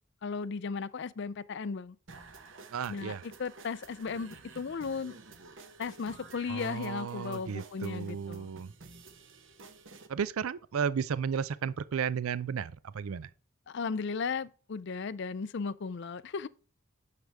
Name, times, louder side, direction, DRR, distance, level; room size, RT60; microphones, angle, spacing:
voice 1, 0.2-2.0 2.9-3.1 3.4-5.1 5.8-8.5 13.7-16.5, left 5 dB, 55° left, 0.4 m, -36 dB
sound 1, 2.1-10.1, right 3 dB, 60° right, 1.1 m, -52 dB
voice 2, 2.7-3.2 6.5-8.7 10.1-13.3, right 7 dB, 80° right, 0.4 m, -34 dB
9.5 x 6.7 x 3.4 m
head